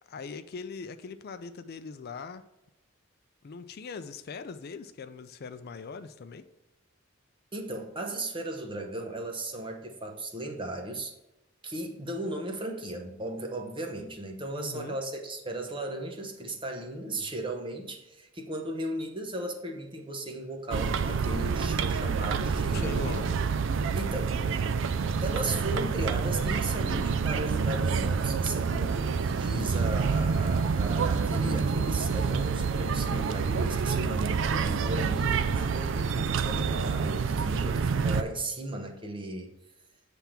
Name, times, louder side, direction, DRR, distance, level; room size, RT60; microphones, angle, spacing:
voice 1, 0.1-2.4 3.4-6.5 14.5-15.0 22.7-23.3 24.8-25.0, left 5 dB, 50° left, 10 dB, 0.4 m, -41 dB
voice 2, 7.5-11.1 11.6-23.3 23.9-24.4 25.2-39.5, right 1 dB, 25° right, 3 dB, 0.9 m, -36 dB
sound 1, 20.7-38.2, right 5 dB, 65° right, 0.4 m, -28 dB
7.4 x 3.5 x 5.7 m, 0.96 s
head